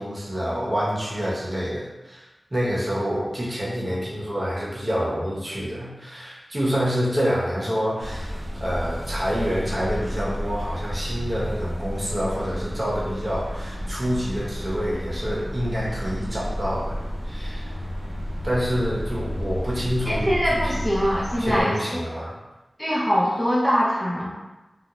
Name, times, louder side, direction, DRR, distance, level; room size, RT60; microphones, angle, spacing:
voice 1, 0.0-17.7 18.4-20.8 21.4-22.3, equal, 35° right, -6 dB, 0.9 m, -27 dB
sound 1, 8.0-21.6, equal, 80° right, 0.7 m, -31 dB
voice 2, 20.1-22.0 22.8-24.3, equal, 5° left, -6 dB, 0.5 m, -23 dB
2.3 x 2.0 x 3.0 m, 1.1 s
wide cardioid pair, 50°, 0 cm